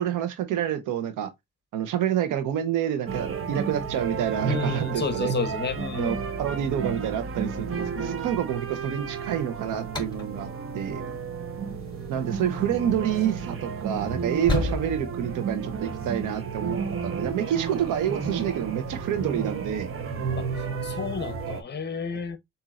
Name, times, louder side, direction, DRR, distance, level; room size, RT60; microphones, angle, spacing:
voice 1, 0.0-1.3 1.7-5.3 6.0-10.5 10.7-11.0 12.1-19.9, right 9 dB, 90° right, 1.0 m, -28 dB
sound 1, 3.1-21.6, right 5 dB, 45° right, 1.0 m, -32 dB
voice 2, 4.5-6.2 7.9-8.2 20.4-20.5 20.8-22.4, left 5 dB, 35° left, 1.1 m, -31 dB
sound 2, 9.8-16.2, left 2 dB, 15° left, 3.6 m, -35 dB
7.1 x 2.7 x 2.5 m
cardioid pair, 90°, 30 cm